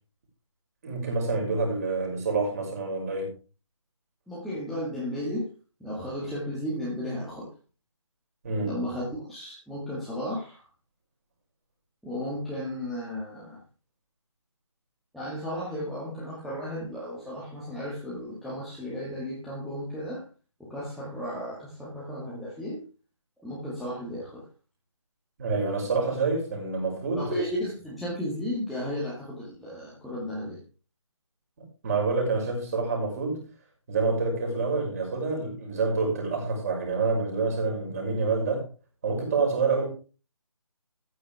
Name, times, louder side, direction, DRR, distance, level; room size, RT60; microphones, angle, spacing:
voice 1, 0.8-3.3 8.4-8.8 25.4-27.3 31.8-33.5 33.9-38.6 39.0-39.9, right 3 dB, 30° right, -1 dB, 5.9 m, -27 dB
voice 2, 4.3-5.5 5.8-7.5 8.6-10.6 12.0-13.6 15.1-20.2 20.6-22.8 23.4-24.4 27.2-30.6, equal, ahead, -9 dB, 1.9 m, -34 dB
15.0 x 9.4 x 3.5 m, 0.35 s
figure-of-eight pair, 155°, 17 cm